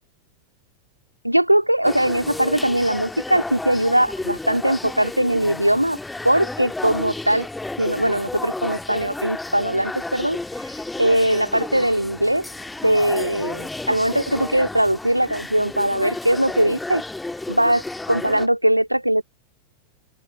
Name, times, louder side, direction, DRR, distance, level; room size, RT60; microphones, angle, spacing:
voice 1, 1.2-6.0 6.2-7.5 7.8-10.4 11.0-12.4 12.8-17.0 17.5-17.8 18.1-19.2, right 1 dB, 90° right, 2.0 m, -20 dB
sound 1, 1.8-18.5, left 2 dB, 5° left, 2.0 m, -32 dB
open air
figure-of-eight pair, 90°, 0 cm